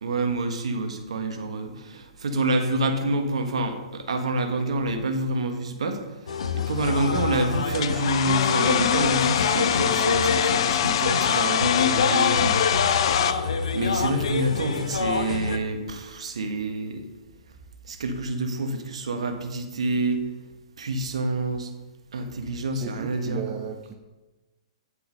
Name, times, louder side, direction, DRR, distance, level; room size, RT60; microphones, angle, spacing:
voice 1, 0.0-12.6 12.9-13.1 13.7-17.0 17.9-20.3 20.8-21.7 22.1-23.5, right 2 dB, 75° right, 6 dB, 1.5 m, -28 dB
sound 1, 6.3-15.6, left 5 dB, 75° left, 0.9 m, -26 dB
voice 2, 6.8-7.3 22.7-23.9, right 6 dB, 25° right, 3 dB, 0.9 m, -36 dB
Domestic sounds home sounds, 7.7-13.3, left 10 dB, 55° left, 0.6 m, -24 dB
9.6 x 6.7 x 5.2 m, 1.1 s
hypercardioid pair, 125°, 3 cm